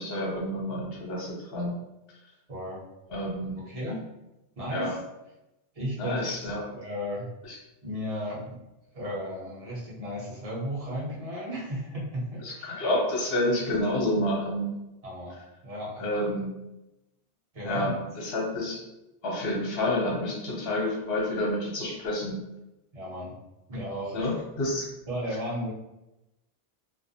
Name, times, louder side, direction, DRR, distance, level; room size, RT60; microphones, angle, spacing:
voice 1, 0.0-1.7 3.1-3.5 4.7-4.9 6.0-6.7 12.4-14.7 16.0-16.5 17.6-18.8 19.2-22.4 24.1-24.9, left 1 dB, 65° left, -3 dB, 1.0 m, -29 dB
voice 2, 2.5-2.8 3.5-4.0 4.6-5.0 5.7-6.4 6.6-7.2 7.8-8.6 8.9-12.8 15.0-15.4 15.6-16.1 17.5-17.9 22.9-23.3 23.7-24.3 25.1-25.7, equal, 35° right, -7 dB, 0.9 m, -34 dB
2.4 x 2.0 x 2.6 m, 0.94 s
omnidirectional pair, 1.1 m